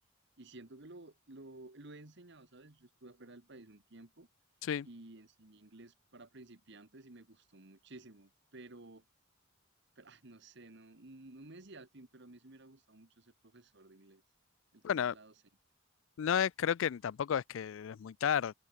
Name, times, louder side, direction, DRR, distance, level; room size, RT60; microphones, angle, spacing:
voice 1, 0.4-4.3 4.8-9.0 10.0-14.2 14.7-15.3, right 2 dB, 55° right, 1.5 m, -54 dB
voice 2, 14.8-15.1 16.2-18.5, left 8 dB, 65° left, 0.3 m, -32 dB
open air
head